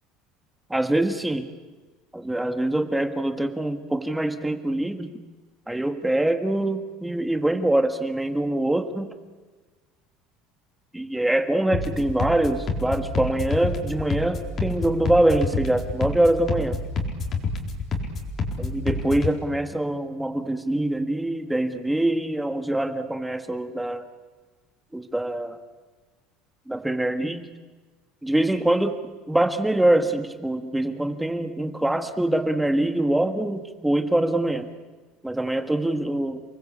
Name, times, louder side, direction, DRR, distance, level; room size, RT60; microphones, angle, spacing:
voice 1, 0.7-1.5 2.1-5.2 5.7-9.1 10.9-16.8 18.6-24.0 24.9-25.6 26.7-27.5 28.2-29.0 29.3-34.7 35.2-36.4, right 1 dB, 5° right, 7 dB, 1.5 m, -24 dB
sound 1, 11.7-19.3, left 3 dB, 30° left, 4.2 m, -28 dB
29.5 x 21.0 x 8.6 m, 1.3 s
cardioid pair, 160°, 0 cm